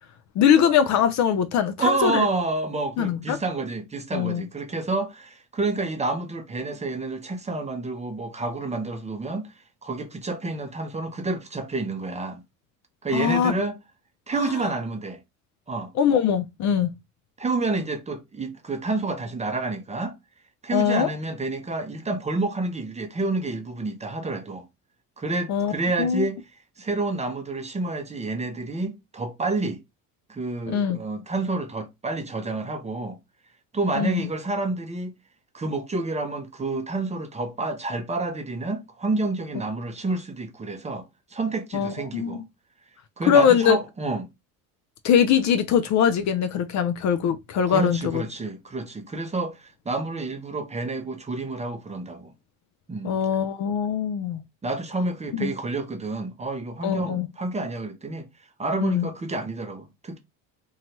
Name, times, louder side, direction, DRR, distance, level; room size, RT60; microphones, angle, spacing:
voice 1, 0.4-2.2 3.0-3.4 4.1-4.4 13.1-13.6 14.3-14.4 16.0-16.9 20.7-21.1 25.5-25.7 26.0-26.2 30.7-31.0 34.0-34.3 41.7-42.4 43.2-43.8 45.0-48.2 53.0-54.4 55.4-55.5 56.8-57.3 58.8-59.1, left 8 dB, 45° left, 0.5 m, -22 dB
voice 2, 1.8-9.5 9.8-12.4 13.0-13.8 14.3-15.2 15.7-15.9 17.4-20.1 20.6-24.7 25.2-26.4 26.8-29.8 30.3-33.2 33.7-35.1 35.5-41.1 41.3-42.4 43.2-44.3 47.7-52.3 52.9-53.1 54.6-58.3 58.6-60.2, right 3 dB, 15° right, 0.6 m, -29 dB
2.8 x 2.3 x 2.9 m
supercardioid pair, 80°, 39 cm